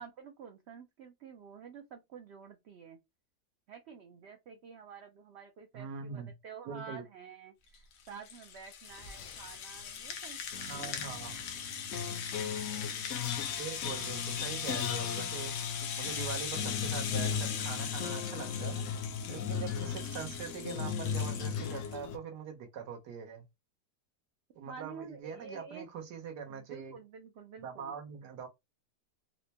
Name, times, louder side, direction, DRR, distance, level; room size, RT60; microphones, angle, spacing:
voice 1, 0.0-3.0 3.7-11.0 24.7-25.9 26.5-28.0, right 6 dB, 70° right, 0.6 m, -49 dB
voice 2, 5.7-6.3 6.7-7.0 10.6-11.4 13.6-15.5 16.0-18.8 19.3-23.4 24.5-27.0 27.6-28.5, right 6 dB, 85° right, 1.4 m, -43 dB
Rattle (instrument), 7.7-22.0, left 7 dB, 85° left, 1.2 m, -40 dB
sound 1, 9.0-9.6 10.5-22.2, left 7 dB, 65° left, 0.8 m, -37 dB
4.2 x 2.1 x 2.8 m
omnidirectional pair, 1.7 m